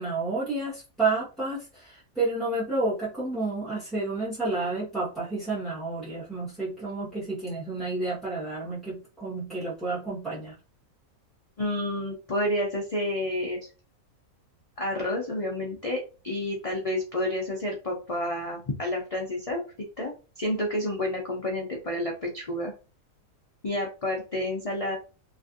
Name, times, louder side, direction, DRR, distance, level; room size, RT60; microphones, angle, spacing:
voice 1, 0.0-10.5, right 3 dB, ahead, -9 dB, 0.8 m, -30 dB
voice 2, 11.6-13.6 14.8-16.0 16.2-22.7 23.6-25.0, left 1 dB, 65° left, -1 dB, 0.3 m, -30 dB
3.1 x 2.5 x 2.5 m, 0.33 s
omnidirectional pair, 1.5 m